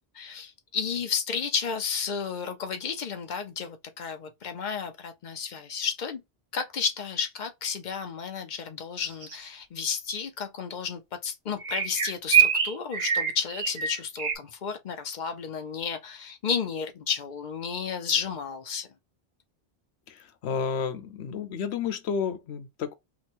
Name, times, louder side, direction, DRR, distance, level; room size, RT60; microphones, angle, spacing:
voice 1, 0.1-6.2 6.5-18.9, left 6 dB, 50° left, 0.7 m, -32 dB
sound 1, 9.0-9.4 11.6-14.4, right 8 dB, 45° right, 0.7 m, -24 dB
voice 2, 20.1-22.9, left 6 dB, 90° left, 0.9 m, -31 dB
3.0 x 2.3 x 4.2 m
omnidirectional pair, 1.1 m